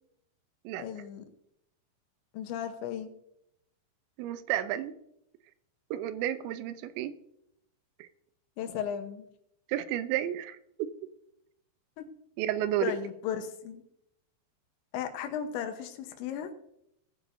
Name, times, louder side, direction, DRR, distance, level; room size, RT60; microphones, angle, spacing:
voice 1, 0.8-1.3 2.3-3.1 8.6-9.3 12.0-12.1 12.8-13.8 14.9-16.5, left 8 dB, 85° left, 8 dB, 3.4 m, -35 dB
voice 2, 4.2-4.9 5.9-7.1 8.0-8.1 9.7-10.6 12.4-12.9, right 12 dB, 90° right, 13 dB, 3.0 m, -31 dB
19.0 x 9.2 x 2.7 m, 0.77 s
omnidirectional pair, 5.1 m